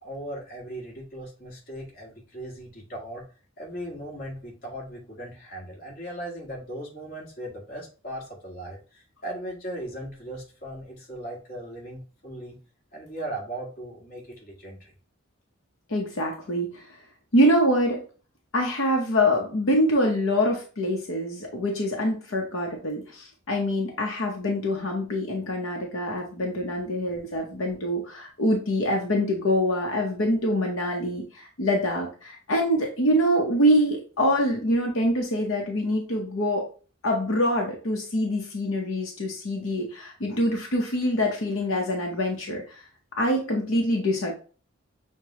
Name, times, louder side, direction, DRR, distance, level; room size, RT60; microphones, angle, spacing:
voice 1, 0.0-3.2 3.6-12.6 12.9-14.9, right 1 dB, 45° left, -2 dB, 1.5 m, -38 dB
voice 2, 15.9-16.8 17.3-18.0 18.5-36.7 37.0-42.8 43.2-44.3, equal, 85° left, 1 dB, 0.9 m, -25 dB
6.5 x 2.2 x 2.9 m, 0.37 s
head